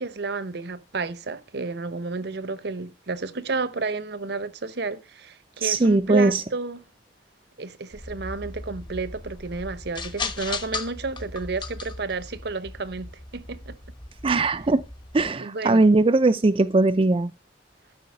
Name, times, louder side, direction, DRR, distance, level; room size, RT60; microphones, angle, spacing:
voice 1, 0.0-6.8 7.6-13.8 15.4-15.8, right 3 dB, 65° right, 0.9 m, -31 dB
voice 2, 5.6-6.4 14.2-14.8 15.1-17.3, right 2 dB, 30° right, 0.5 m, -20 dB
sound 1, 7.9-15.3, left 3 dB, 25° left, 1.2 m, -37 dB
12.5 x 5.7 x 6.6 m
head